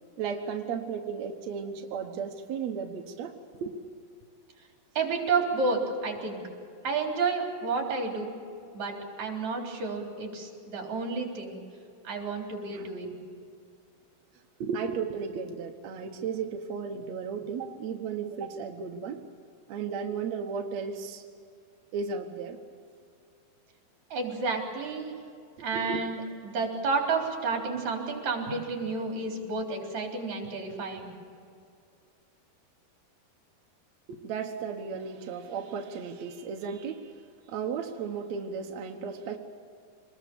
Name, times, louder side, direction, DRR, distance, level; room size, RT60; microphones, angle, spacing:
voice 1, 0.2-3.4 3.6-3.7 12.7-12.9 14.6-19.3 19.7-21.2 21.9-22.6 25.7-26.0 34.1-37.1 37.5-39.4, right 6 dB, 60° right, 2 dB, 1.9 m, -34 dB
voice 2, 4.9-6.4 6.8-8.4 8.7-11.6 12.0-13.2 24.1-25.2 25.6-31.1, right 4 dB, 45° right, 1 dB, 4.8 m, -31 dB
25.5 x 21.0 x 7.0 m, 2.4 s
omnidirectional pair, 4.5 m